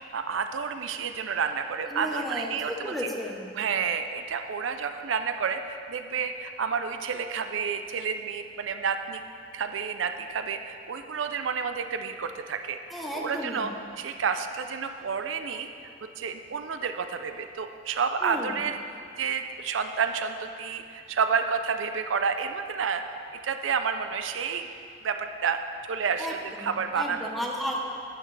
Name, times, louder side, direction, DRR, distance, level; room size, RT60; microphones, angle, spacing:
voice 1, 0.1-3.1 3.5-9.2 9.5-13.7 14.0-15.7 16.2-18.8 19.2-23.2 23.4-24.7 25.0-25.6 25.9-27.3, right 6 dB, 90° right, 7 dB, 0.5 m, -30 dB
voice 2, 1.9-3.5 12.9-13.8 18.2-18.5 26.2-27.8, equal, ahead, -2 dB, 0.9 m, -34 dB
12.0 x 8.9 x 3.3 m, 2.6 s
head